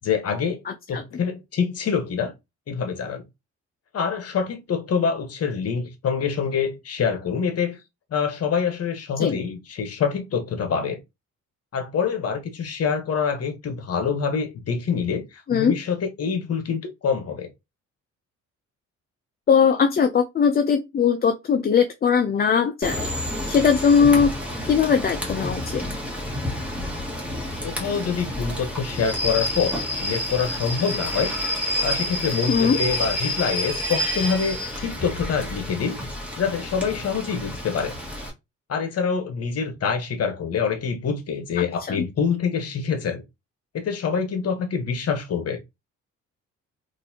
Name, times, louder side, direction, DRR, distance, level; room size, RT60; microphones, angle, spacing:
voice 1, 0.0-0.6 0.9-2.3 2.7-3.2 3.9-7.8 8.1-11.0 11.7-17.5 27.6-31.3 31.8-36.0 36.4-38.0 38.7-43.2 43.7-45.6, left 6 dB, 55° left, 1.0 m, -26 dB
voice 2, 0.7-1.0 9.2-9.4 15.5-15.8 19.5-23.1 23.5-24.3 24.7-25.8 32.5-32.8 41.6-42.0, left 6 dB, 30° left, 0.4 m, -20 dB
Rain / Train, 22.8-38.3, left 1 dB, 5° right, 1.5 m, -29 dB
3.9 x 2.6 x 2.7 m
cardioid pair, 90°, 30 cm